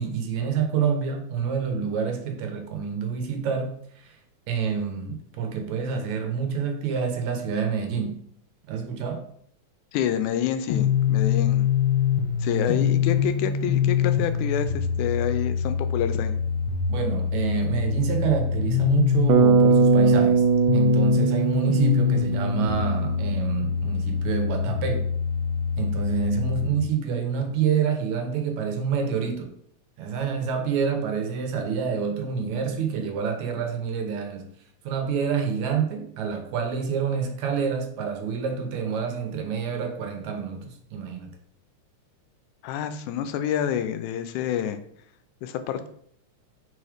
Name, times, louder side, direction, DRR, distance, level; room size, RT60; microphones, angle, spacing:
voice 1, 0.0-4.2 4.5-8.2 8.7-9.2 16.9-20.4 20.7-25.1 25.8-29.5 30.0-34.5 34.8-41.3, right 6 dB, 75° right, 4 dB, 2.1 m, -27 dB
voice 2, 9.9-11.7 12.4-16.4 42.6-44.8 45.4-45.9, left 10 dB, 85° left, 9 dB, 2.0 m, -28 dB
sound 1, 10.7-26.7, left 8 dB, 65° left, 1.9 m, -24 dB
Bass guitar, 19.3-23.4, right 8 dB, 90° right, 2.1 m, -22 dB
4.6 x 4.2 x 4.9 m, 0.64 s
omnidirectional pair, 3.5 m